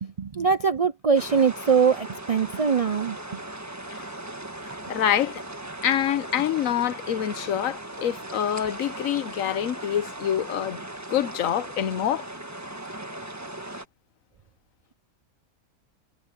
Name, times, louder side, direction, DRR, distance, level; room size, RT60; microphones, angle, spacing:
voice 1, 0.0-3.2, right 6 dB, 55° right, 0.4 m, -22 dB
sound 1, 1.1-13.8, right 1 dB, 15° right, 1.5 m, -38 dB
voice 2, 4.9-5.4 5.8-10.8 11.1-12.2, left 10 dB, 85° left, 1.2 m, -26 dB
omnidirectional pair, 1.4 m